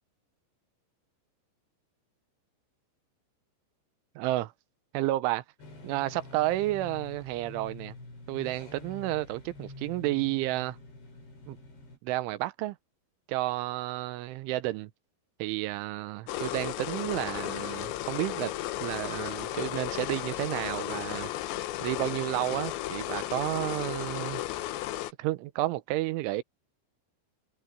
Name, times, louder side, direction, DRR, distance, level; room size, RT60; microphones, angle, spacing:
voice 1, 4.2-4.5 4.9-5.4 5.8-8.0 8.3-10.8 11.5-11.6 12.0-12.8 13.3-14.9 15.4-18.5 18.8-21.3 21.8-24.4 25.2-26.4, right 17 dB, 85° right, 3.4 m, -31 dB
sound 1, 5.6-12.0, left 2 dB, 60° left, 10.0 m, -47 dB
sound 2, 16.3-25.1, left 14 dB, 75° left, 3.3 m, -34 dB
omnidirectional pair, 5.4 m